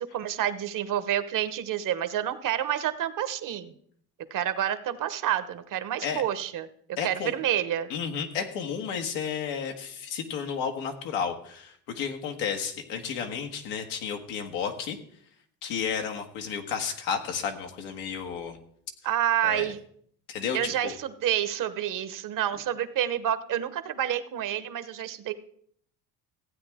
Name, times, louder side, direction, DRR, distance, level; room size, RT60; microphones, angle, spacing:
voice 1, 0.0-3.7 4.3-6.7 7.0-7.9 19.0-19.8 20.5-25.3, right 11 dB, 50° right, 12 dB, 1.0 m, -28 dB
voice 2, 7.0-7.3 7.9-15.0 15.6-18.6 19.4-19.7 20.3-20.9, left 7 dB, 90° left, 4 dB, 1.6 m, -32 dB
15.5 x 8.6 x 3.6 m, 0.64 s
supercardioid pair, 100°, 40 cm